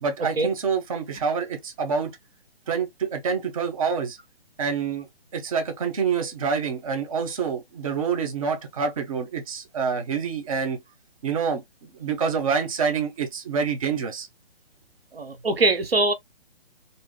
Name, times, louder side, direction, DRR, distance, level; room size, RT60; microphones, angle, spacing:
voice 1, 0.0-2.1 2.7-4.2 4.6-5.1 5.3-10.8 11.2-11.6 11.9-14.3, right 6 dB, 35° right, 0.7 m, -27 dB
voice 2, 15.1-16.1, right 2 dB, 75° right, 0.7 m, -22 dB
3.4 x 2.6 x 2.2 m
figure-of-eight pair, 135°, 30 cm